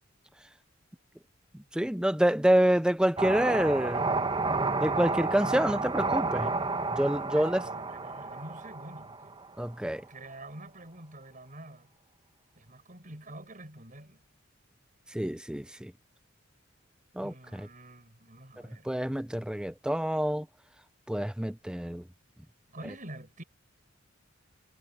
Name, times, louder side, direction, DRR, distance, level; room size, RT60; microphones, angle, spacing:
voice 1, 1.7-4.1 4.8-6.5 6.9-7.6 9.6-10.0 15.1-15.9 17.2-17.7 18.9-20.5 21.1-22.0, right 1 dB, 5° right, 0.7 m, -27 dB
sound 1, 3.2-9.7, right 3 dB, 25° right, 1.8 m, -31 dB
voice 2, 7.2-9.3 10.1-11.9 12.6-14.2 17.2-18.9 22.7-23.4, right 1 dB, 45° right, 5.4 m, -47 dB
head